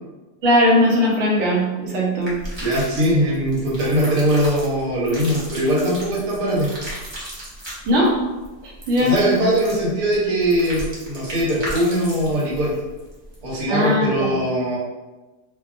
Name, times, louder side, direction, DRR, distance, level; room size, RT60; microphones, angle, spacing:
voice 1, 0.4-2.4 7.8-8.2 8.6-9.1 13.7-14.4, left 1 dB, 60° right, -5 dB, 0.9 m, -19 dB
sound 1, 2.2-13.6, equal, 30° right, 0.4 m, -35 dB
voice 2, 2.6-6.7 9.0-12.7 13.4-14.8, right 1 dB, 75° right, -6 dB, 1.3 m, -21 dB
2.7 x 2.3 x 2.4 m, 1.2 s
omnidirectional pair, 1.6 m